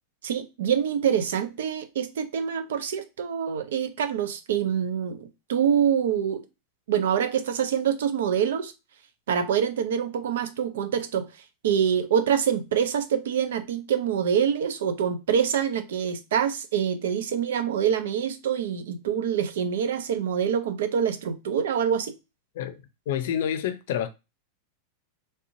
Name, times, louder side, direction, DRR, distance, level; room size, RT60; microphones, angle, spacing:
voice 1, 0.2-6.4 6.9-8.7 9.3-11.3 11.6-22.2, right 8 dB, 80° right, 0.6 m, -25 dB
voice 2, 22.5-24.1, left 9 dB, 70° left, 0.5 m, -29 dB
3.3 x 2.9 x 2.7 m
hypercardioid pair, 120°, 0 cm